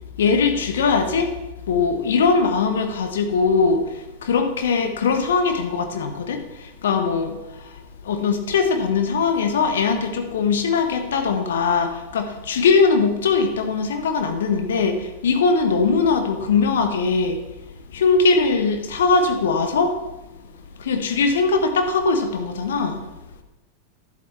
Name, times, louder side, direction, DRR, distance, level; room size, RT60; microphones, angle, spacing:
voice 1, 0.2-1.3 1.7-17.4 17.9-20.1 20.8-23.0, left 4 dB, 60° left, 6 dB, 1.1 m, -21 dB
11.0 x 8.0 x 3.4 m, 0.98 s
figure-of-eight pair, 90°, 0 cm